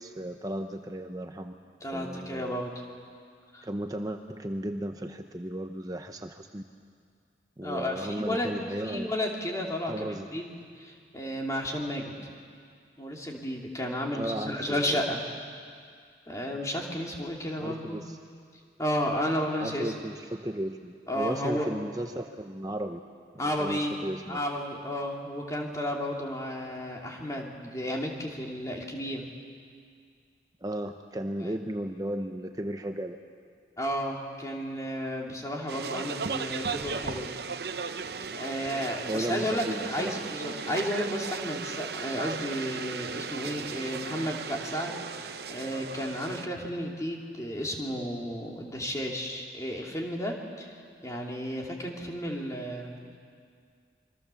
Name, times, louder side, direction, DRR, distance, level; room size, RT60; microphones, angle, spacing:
voice 1, 0.0-1.5 1.9-2.6 3.6-6.6 7.6-9.1 9.9-10.3 14.1-15.0 17.6-18.2 19.6-23.0 23.3-24.4 30.6-33.2 39.1-40.2, right 1 dB, 20° right, 5 dB, 0.8 m, -35 dB
voice 2, 1.8-2.7 3.5-3.6 7.6-8.5 8.8-10.0 10.3-10.5 10.8-12.1 13.0-15.2 16.3-18.0 18.8-19.9 21.1-21.7 23.4-24.0 24.3-29.3 31.4-31.5 33.8-37.3 38.3-53.1, equal, 20° left, -1 dB, 2.9 m, -33 dB
sound 1, 35.7-46.5, right 5 dB, 60° right, 0.8 m, -36 dB
27.0 x 23.5 x 7.1 m, 2.1 s
head